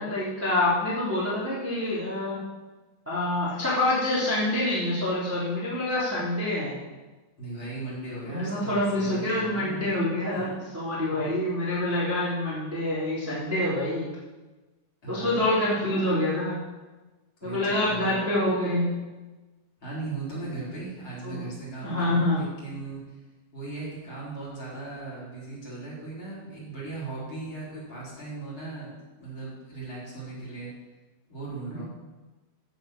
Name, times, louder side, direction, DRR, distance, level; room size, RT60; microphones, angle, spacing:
voice 1, 0.0-2.4 3.1-6.7 8.2-14.1 15.1-16.6 17.4-18.9 21.2-21.4 21.8-22.4 31.7-31.8, left 1 dB, 5° right, -9 dB, 2.2 m, -26 dB
voice 2, 7.4-9.9 10.3-10.6 15.0-15.5 17.4-18.2 19.8-23.2 23.5-28.9 29.2-30.7 31.3-31.8, right 3 dB, 30° left, -6 dB, 4.8 m, -38 dB
16.0 x 6.1 x 6.6 m, 1.2 s
omnidirectional pair, 5.0 m